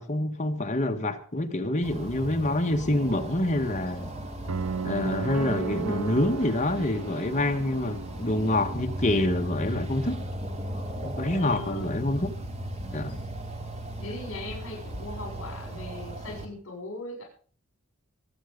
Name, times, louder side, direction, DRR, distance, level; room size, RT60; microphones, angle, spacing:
voice 1, 0.0-4.1 4.8-10.2 11.0-12.3 12.9-13.2, left 1 dB, 35° left, 1.6 m, -27 dB
sound 1, 1.8-16.5, right 1 dB, 30° right, 2.5 m, -37 dB
sound 2, 4.5-8.6, right 6 dB, 75° right, 0.6 m, -35 dB
voice 2, 11.3-12.1 14.0-17.2, left 2 dB, 60° left, 6.1 m, -39 dB
22.5 x 8.4 x 5.3 m
head